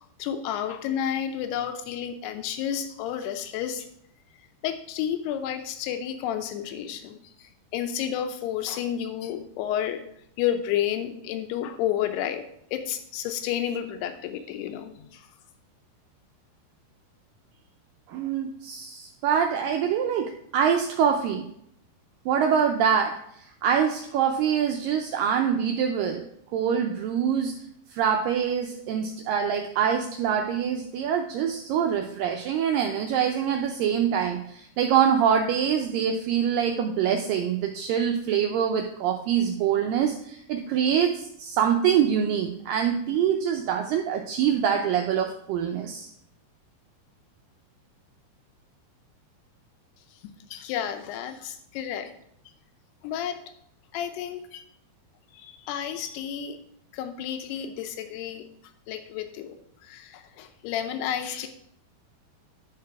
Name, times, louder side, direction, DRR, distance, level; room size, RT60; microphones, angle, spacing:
voice 1, 0.2-3.9 4.6-10.0 10.4-12.4 12.7-15.2 50.2-52.1 53.0-53.4 53.9-54.6 55.3-56.6 56.9-58.4 58.9-59.6 59.8-61.5, left 10 dB, 90° left, 7 dB, 2.7 m, -31 dB
voice 2, 18.1-21.5 22.3-26.3 26.5-27.5 27.9-46.1, right 8 dB, 85° right, 4 dB, 1.9 m, -25 dB
11.0 x 4.8 x 4.6 m, 0.71 s
omnidirectional pair, 4.6 m